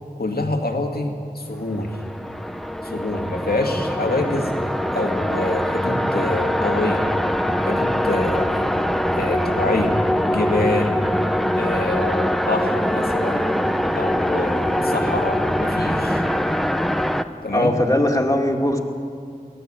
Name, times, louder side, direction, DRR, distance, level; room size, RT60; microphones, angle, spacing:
voice 1, 0.2-2.0 2.8-4.5 4.9-7.1 7.6-8.7 9.1-10.0 10.3-11.0 11.5-13.5 13.9-16.2 17.4-17.7, left 2 dB, 85° left, 3 dB, 2.3 m, -26 dB
sound 1, 1.7-17.2, equal, ahead, 0.9 m, -23 dB
voice 2, 17.5-18.8, left 1 dB, 20° left, 0 dB, 2.4 m, -19 dB
23.0 x 16.0 x 8.9 m, 2.3 s
wide cardioid pair, 45°, 16 cm